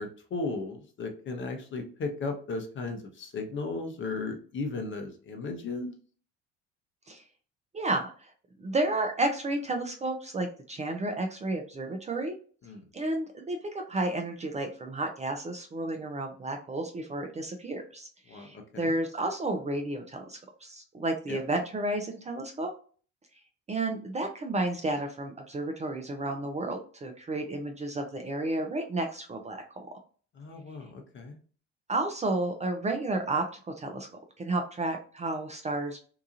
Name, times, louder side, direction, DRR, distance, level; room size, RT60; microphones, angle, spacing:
voice 1, 0.0-6.0 12.7-12.8 18.3-18.9 21.3-21.4 30.4-31.4, left 3 dB, 35° left, 5 dB, 0.8 m, -36 dB
voice 2, 7.7-8.3 8.6-12.4 12.9-22.7 23.7-29.9 31.9-34.1 34.4-36.0, right 2 dB, 20° right, 4 dB, 0.5 m, -32 dB
2.8 x 2.3 x 2.7 m, 0.42 s
hypercardioid pair, 60°, 32 cm